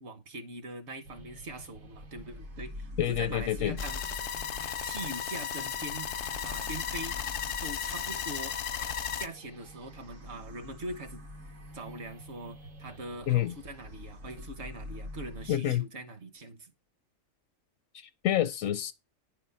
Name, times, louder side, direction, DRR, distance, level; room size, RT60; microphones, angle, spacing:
voice 1, 0.0-4.0 4.8-6.1 6.4-7.2 7.6-8.6 9.2-11.2 11.7-16.7, right 2 dB, 60° right, 1.3 m, -42 dB
sound 1, 1.0-15.5, left 1 dB, 75° right, 1.8 m, -46 dB
voice 2, 3.0-3.8 13.3-13.5 15.5-15.8 17.9-18.9, left 12 dB, 80° left, 1.1 m, -28 dB
sound 2, 3.8-9.3, left 8 dB, 55° left, 0.6 m, -35 dB
9.9 x 4.3 x 5.6 m
omnidirectional pair, 1.4 m